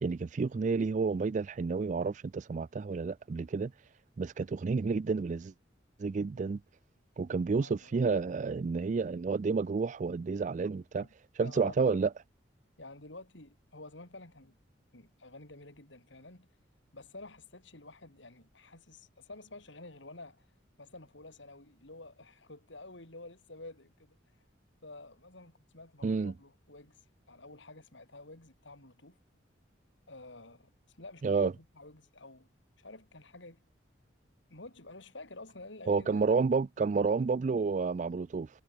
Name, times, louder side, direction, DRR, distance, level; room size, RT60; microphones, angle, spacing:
voice 1, 0.0-3.7 4.2-5.5 6.0-6.6 7.2-11.1 11.4-12.1 26.0-26.3 31.2-31.5 35.9-38.5, right 4 dB, 40° right, 0.3 m, -30 dB
voice 2, 7.6-8.0 11.0-11.1 11.4-12.1 12.8-14.6 14.9-16.5 16.9-20.5 20.8-24.2 24.8-27.0 27.3-29.2 30.1-32.5 32.8-33.6 34.5-36.4, left 2 dB, 70° left, 4.4 m, -50 dB
head